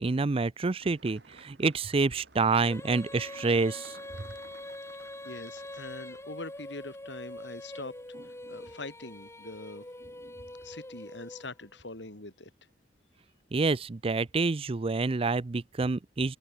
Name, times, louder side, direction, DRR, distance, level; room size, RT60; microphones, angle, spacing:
voice 1, 0.0-4.0 13.5-16.4, right 3 dB, 30° right, 0.5 m, -28 dB
sound 1, 0.8-6.3, right 3 dB, 65° right, 6.8 m, -55 dB
Female singing, 2.6-11.8, left 1 dB, 15° left, 3.4 m, -44 dB
voice 2, 5.2-8.0 8.2-9.9 10.6-12.5, left 2 dB, 80° left, 3.7 m, -43 dB
head